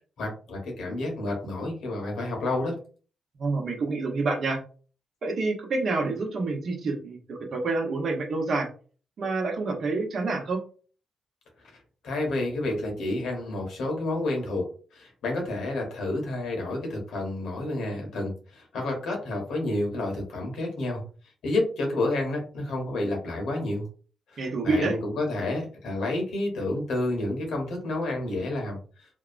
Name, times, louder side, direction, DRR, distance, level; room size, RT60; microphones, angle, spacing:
voice 1, 0.2-2.7 12.0-14.7 14.9-21.0 21.4-23.9 24.3-28.8, left 2 dB, 80° left, 1 dB, 1.0 m, -30 dB
voice 2, 3.4-4.6 5.2-8.7 9.2-10.6 24.4-24.9, right 3 dB, 65° right, 2 dB, 0.9 m, -27 dB
2.7 x 2.2 x 2.5 m, 0.39 s
supercardioid pair, 60°, 0 cm